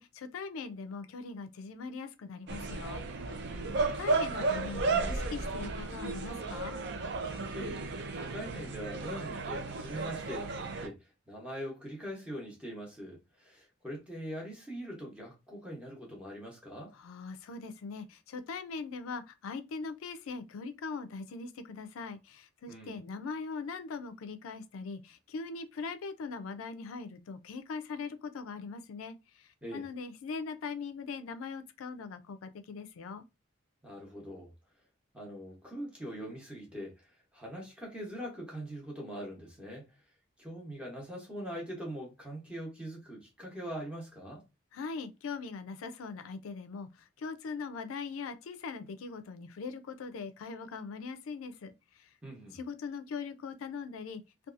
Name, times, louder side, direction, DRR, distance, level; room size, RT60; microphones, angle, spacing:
voice 1, 0.0-3.0 3.8-6.8 16.9-33.2 44.7-52.1 52.5-54.2, left 4 dB, 85° left, 0.4 m, -41 dB
sound 1, 2.5-10.9, right 3 dB, 55° right, 0.4 m, -34 dB
voice 2, 3.4-3.7 7.5-7.8 8.1-16.9 22.7-22.9 29.6-29.8 33.8-34.5 35.1-39.9 40.4-44.4 52.2-52.6, equal, 5° right, 0.8 m, -42 dB
2.6 x 2.3 x 2.4 m
head